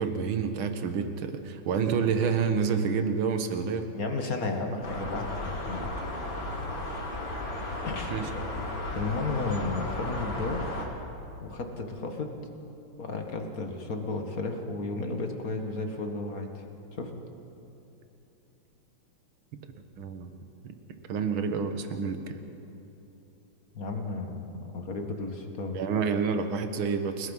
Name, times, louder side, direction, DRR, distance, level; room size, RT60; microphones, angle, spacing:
voice 1, 0.0-3.9 5.1-5.2 8.1-8.3 20.0-20.3 20.6-20.8 21.1-22.4 25.7-27.3, right 6 dB, 65° right, 7 dB, 2.1 m, -28 dB
voice 2, 3.9-6.1 7.8-10.6 11.4-12.3 13.0-16.6 16.9-17.1 23.7-25.8, left 3 dB, 40° left, 4 dB, 2.0 m, -33 dB
sound 1, 4.8-10.9, left 1 dB, 85° left, 4.2 m, -34 dB
29.5 x 18.5 x 5.6 m, 3.0 s
omnidirectional pair, 2.4 m